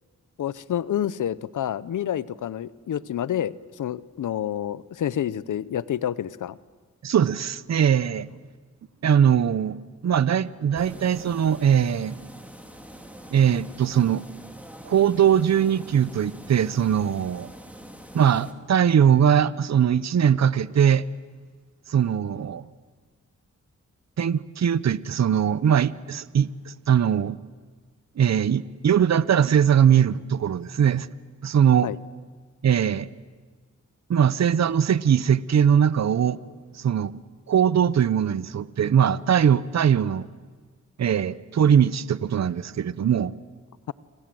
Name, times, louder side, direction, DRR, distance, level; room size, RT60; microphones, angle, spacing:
voice 1, 0.4-6.6 31.8-32.0, left 10 dB, 80° left, 0.8 m, -28 dB
voice 2, 7.0-8.3 9.0-9.8 10.0-12.2 13.3-14.2 14.8-17.5 18.1-21.0 21.9-22.7 24.2-27.4 28.2-31.1 31.4-31.9 32.6-33.1 34.1-36.4 36.8-37.1 37.5-40.3 41.0-43.3, right 8 dB, 60° right, 0.8 m, -21 dB
sound 1, 10.8-18.5, equal, 5° right, 3.0 m, -44 dB
28.5 x 26.0 x 7.8 m
cardioid pair, 65°, 30 cm